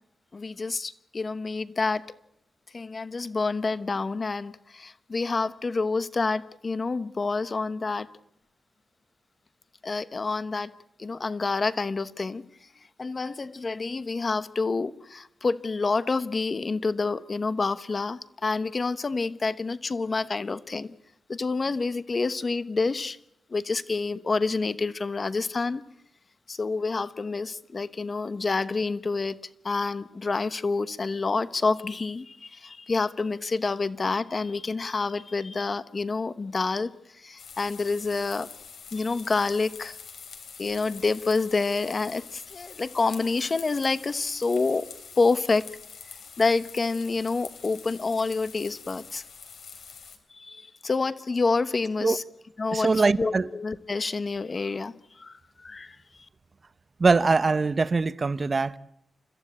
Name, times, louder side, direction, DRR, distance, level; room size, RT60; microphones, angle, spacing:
voice 1, 0.3-2.0 2.7-8.1 9.8-10.7 11.0-12.4 13.0-20.9 21.3-23.2 23.5-25.8 26.5-29.4 29.6-38.5 38.9-40.0 40.6-44.9 45.2-45.7 46.4-49.2 50.3-52.2 52.6-56.0, left 3 dB, 35° left, 1.0 m, -28 dB
sound 1, 37.4-50.2, left 6 dB, 80° left, 3.5 m, -45 dB
voice 2, 52.7-53.5 57.0-58.8, right 4 dB, 35° right, 0.8 m, -22 dB
29.5 x 15.0 x 8.6 m
wide cardioid pair, 135°, 0 cm